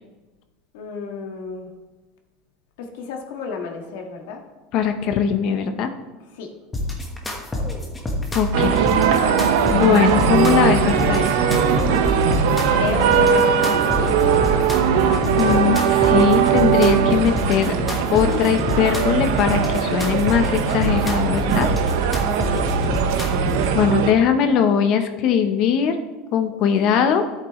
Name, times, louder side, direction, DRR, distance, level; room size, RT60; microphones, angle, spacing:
voice 1, 0.7-1.7 2.8-4.4 6.4-6.5 12.7-14.2 22.5-22.7 23.9-24.7 26.6-26.9, left 5 dB, 70° left, 2 dB, 1.6 m, -32 dB
voice 2, 4.7-5.9 8.3-8.9 9.7-11.3 15.4-17.7 18.1-21.7 23.7-26.0 26.3-27.2, left 8 dB, 40° left, 7 dB, 0.8 m, -20 dB
sound 1, 6.7-23.7, left 1 dB, 10° left, 1.2 m, -26 dB
sound 2, 8.5-24.1, right 8 dB, 65° right, 0.8 m, -20 dB
14.0 x 8.4 x 3.1 m, 1.2 s
supercardioid pair, 170°, 0 cm